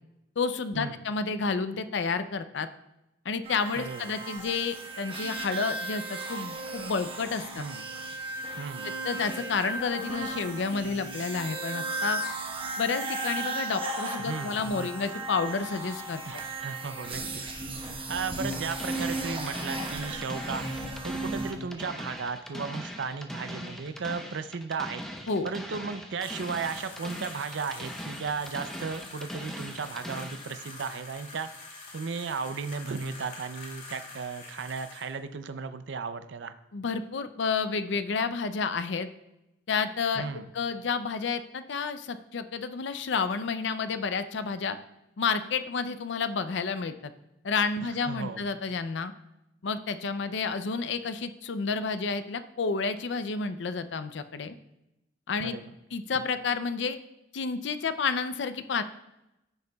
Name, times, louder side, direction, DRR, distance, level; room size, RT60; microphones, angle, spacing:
voice 1, 0.4-2.7 3.3-7.6 9.0-12.2 12.8-16.2 25.3-25.5 36.7-39.1 39.7-40.3 40.5-44.8 45.2-47.1 47.4-49.1 49.6-54.5 55.3-55.6 55.9-57.0 57.3-58.8, left 5 dB, 65° left, 11 dB, 0.5 m, -30 dB
sound 1, 3.4-21.5, right 2 dB, 30° right, 1.1 m, -35 dB
voice 2, 3.7-4.1 7.6-7.8 8.6-8.9 12.6-12.7 14.2-14.9 16.3-17.4 18.1-20.6 21.0-25.0 25.4-31.5 31.9-36.5 40.1-40.5 47.8-48.4 55.4-55.6, right 5 dB, 70° right, 10 dB, 0.5 m, -35 dB
sound 2, 18.5-30.5, equal, ahead, 0.8 m, -40 dB
sound 3, 26.2-35.1, left 3 dB, 45° left, 2.6 m, -46 dB
14.5 x 6.7 x 2.3 m, 0.90 s
head